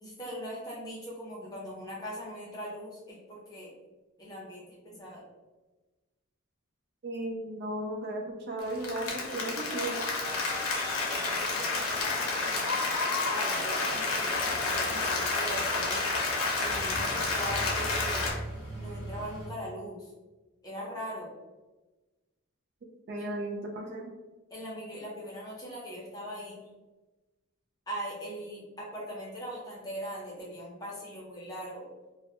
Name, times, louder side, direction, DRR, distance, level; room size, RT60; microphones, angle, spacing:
voice 1, 0.0-3.7 4.2-5.3 11.1-12.0 12.4-12.9 13.3-16.1 16.6-18.2 18.7-20.1 20.6-21.3 23.2-23.3 24.5-26.6 27.9-31.9, equal, 20° left, -5 dB, 0.6 m, -40 dB
voice 2, 7.0-10.0 23.1-24.1, right 1 dB, 50° right, 2 dB, 0.3 m, -35 dB
Applause, 8.6-18.3, left 3 dB, 85° left, 0.6 m, -30 dB
sound 1, 14.3-19.5, right 1 dB, 15° right, 0.8 m, -41 dB
2.1 x 2.1 x 2.8 m, 1.2 s
head